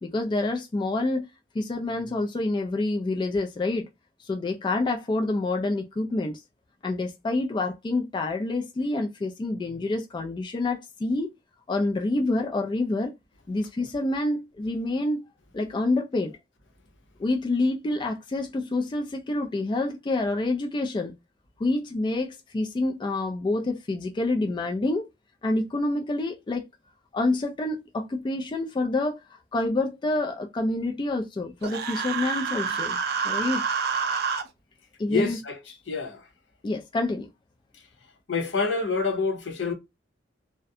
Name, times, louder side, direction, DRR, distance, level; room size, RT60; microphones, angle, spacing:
voice 1, 0.0-1.3 1.5-3.9 4.2-6.4 6.8-11.3 11.7-13.1 13.5-15.3 15.5-16.4 17.2-21.1 21.6-25.1 25.4-26.7 27.1-33.6 35.0-35.4 36.6-37.3, left 2 dB, 25° left, 0.3 m, -27 dB
Human voice, 31.6-34.4, right 6 dB, 60° right, 0.4 m, -28 dB
voice 2, 35.1-35.6 35.9-36.2 38.3-39.7, left 4 dB, 80° left, 0.8 m, -27 dB
2.4 x 2.1 x 2.6 m
head